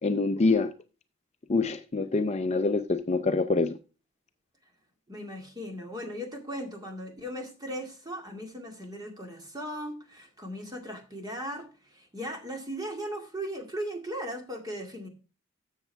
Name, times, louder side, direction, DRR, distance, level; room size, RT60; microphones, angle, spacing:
voice 1, 0.0-0.7 1.5-3.8, left 3 dB, 30° left, 0.5 m, -25 dB
voice 2, 5.1-15.1, equal, 20° right, 2.1 m, -38 dB
13.0 x 7.2 x 3.4 m
head